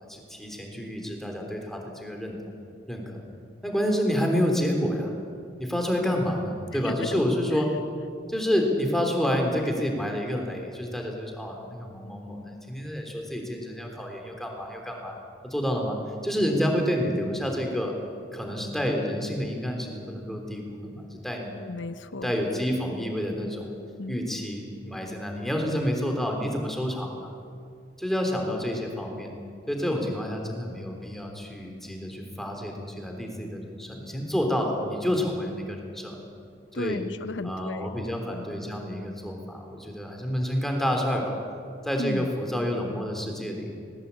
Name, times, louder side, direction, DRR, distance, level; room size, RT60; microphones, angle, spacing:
voice 1, 0.1-2.4 2.9-3.2 3.6-5.1 5.6-7.7 8.3-15.1 15.4-16.0 16.2-17.9 18.3-21.5 22.2-23.7 24.1-27.3 28.0-29.3 29.7-36.2 36.7-37.0 37.4-41.4 41.8-43.7, equal, ahead, 2 dB, 3.4 m, -29 dB
voice 2, 6.8-7.2 21.5-22.3 24.0-24.1 30.0-30.1 36.7-37.9 42.0-42.3, left 2 dB, 75° left, 14 dB, 0.8 m, -34 dB
20.0 x 20.0 x 8.5 m, 2.3 s
head